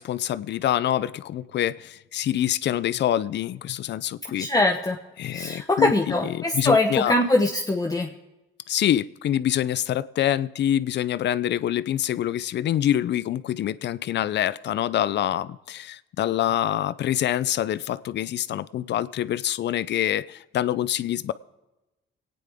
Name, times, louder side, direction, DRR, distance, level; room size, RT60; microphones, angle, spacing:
voice 1, 0.0-4.5 5.2-5.9 6.3-7.1 8.7-21.3, left 11 dB, 60° left, 16 dB, 0.5 m, -26 dB
voice 2, 4.4-5.0 5.3-8.1, left 2 dB, 20° left, 1 dB, 1.0 m, -22 dB
26.5 x 9.3 x 3.6 m, 1.0 s
cardioid pair, 90°, 20 cm